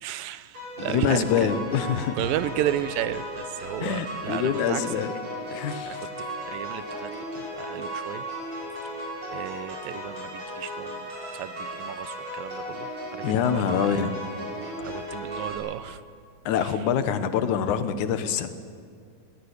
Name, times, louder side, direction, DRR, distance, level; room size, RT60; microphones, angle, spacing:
voice 1, 0.0-1.5 2.2-4.9 5.8-6.1 6.5-8.2 9.3-14.0 14.8-16.0 16.6-16.8, right 12 dB, 90° right, 14 dB, 2.5 m, -33 dB
sound 1, 0.5-15.5, equal, 50° right, 8.1 m, -36 dB
voice 2, 0.8-2.1 3.8-5.1 5.5-6.0 13.2-14.1 16.5-18.5, left 8 dB, 70° left, 10 dB, 2.4 m, -25 dB
21.5 x 17.5 x 8.2 m, 2.3 s
omnidirectional pair, 3.9 m